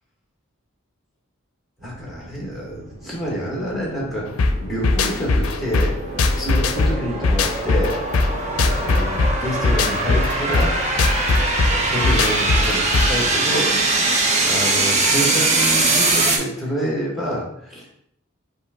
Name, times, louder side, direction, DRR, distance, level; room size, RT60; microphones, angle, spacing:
voice 1, 1.8-6.0 6.4-8.0 8.5-10.7 11.7-13.7 14.4-18.0, equal, ahead, -3 dB, 1.0 m, -27 dB
sound 1, 1.8-16.4, right 2 dB, 35° right, 0.7 m, -23 dB
sound 2, 4.4-13.3, left 3 dB, 80° left, 0.4 m, -20 dB
5.3 x 2.6 x 3.6 m, 0.75 s
head